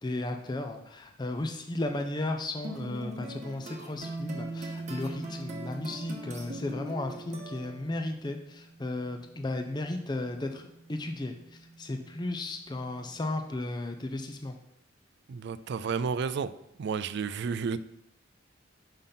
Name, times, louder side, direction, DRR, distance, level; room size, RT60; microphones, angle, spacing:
voice 1, 0.0-14.6, left 2 dB, 20° left, 5 dB, 0.5 m, -35 dB
sound 1, 2.6-8.0, right 1 dB, 35° right, 0.9 m, -42 dB
sound 2, 3.9-13.4, right 3 dB, 15° right, 1.2 m, -44 dB
voice 2, 15.3-16.5 16.8-17.8, right 5 dB, 55° right, 14 dB, 0.3 m, -31 dB
5.7 x 5.1 x 5.7 m, 0.81 s
head